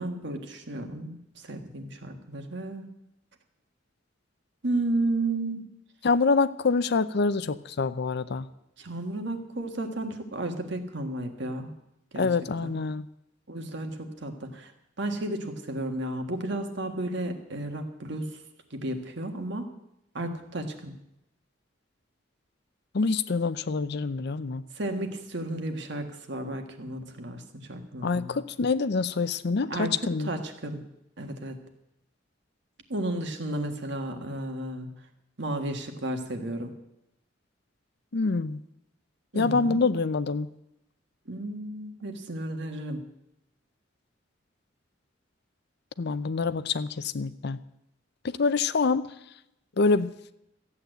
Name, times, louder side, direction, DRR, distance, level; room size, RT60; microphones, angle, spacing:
voice 1, 0.0-2.9 4.6-5.7 8.8-11.7 12.1-12.3 12.6-12.7 13.5-14.7 15.0-18.4 18.7-19.7 20.2-20.9 24.7-28.4 29.7-30.8 31.2-31.6 32.9-35.0 35.4-36.7 39.3-39.9 41.3-43.0, right 1 dB, 65° right, 6 dB, 1.6 m, -33 dB
voice 2, 6.0-8.5 12.2-13.1 22.9-24.6 28.0-30.3 38.1-38.6 39.3-40.5 46.0-47.6 48.4-49.1 49.8-50.1, left 4 dB, 60° left, 15 dB, 0.6 m, -26 dB
14.0 x 8.6 x 7.9 m, 0.84 s
head